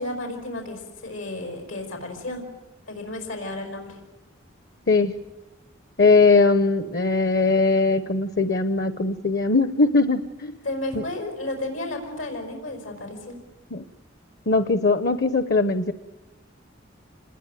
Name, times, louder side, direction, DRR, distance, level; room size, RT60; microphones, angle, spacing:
voice 1, 0.0-2.4 2.9-4.0 10.6-13.4, left 2 dB, 90° left, 4 dB, 5.5 m, -32 dB
voice 2, 6.0-10.5 13.7-13.9 14.5-15.9, left 3 dB, 55° left, 13 dB, 0.9 m, -20 dB
28.0 x 20.5 x 9.2 m, 1.0 s
head